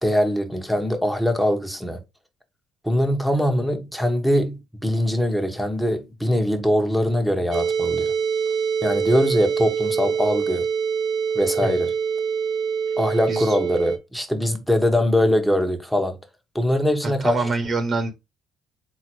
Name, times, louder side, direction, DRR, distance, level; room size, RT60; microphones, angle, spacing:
voice 1, 0.0-2.0 2.8-8.1 8.8-10.7 11.3-11.9 13.0-16.2 16.5-17.4, left 1 dB, ahead, 1.3 m, -22 dB
sound 1, 7.5-14.0, right 6 dB, 60° right, 0.7 m, -24 dB
voice 2, 17.0-18.1, right 3 dB, 45° right, 1.2 m, -25 dB
3.9 x 2.9 x 4.5 m
hypercardioid pair, 60°, 0 cm